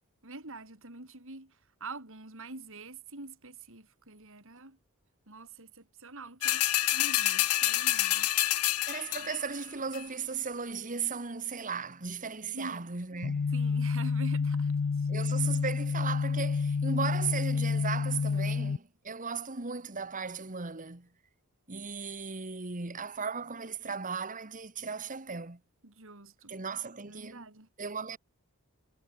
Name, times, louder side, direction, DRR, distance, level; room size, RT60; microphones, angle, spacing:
voice 1, 0.2-1.5 1.8-4.8 5.3-8.3 12.5-12.9 13.5-15.1 25.8-26.6 27.0-27.7, right 3 dB, 60° right, 4.9 m, -45 dB
sound 1, 6.4-9.5 9.9-10.0, left 15 dB, 90° left, 1.1 m, -28 dB
voice 2, 8.9-13.5 15.1-21.1 21.7-25.6 26.5-27.5 27.8-28.2, right 5 dB, 35° right, 1.7 m, -36 dB
sound 2, 13.2-18.8, left 5 dB, 50° left, 0.4 m, -29 dB
head